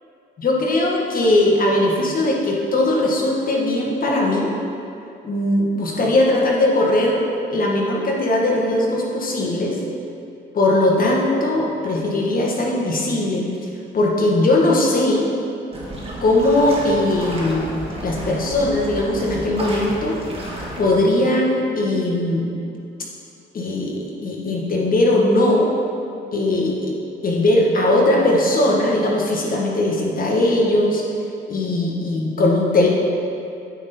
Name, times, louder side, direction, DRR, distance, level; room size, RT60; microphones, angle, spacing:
voice 1, 0.4-4.5 5.2-7.2 7.5-9.8 10.5-13.5 13.9-15.3 16.2-17.7 18.0-20.2 20.8-22.5 23.5-25.7 26.3-26.9 27.2-31.0 31.5-32.9, left 1 dB, 45° left, -2 dB, 1.4 m, -19 dB
sound 1, 15.7-20.9, right 1 dB, 30° right, 1.6 m, -31 dB
9.1 x 3.6 x 4.2 m, 2.6 s
cardioid pair, 90°, 20 cm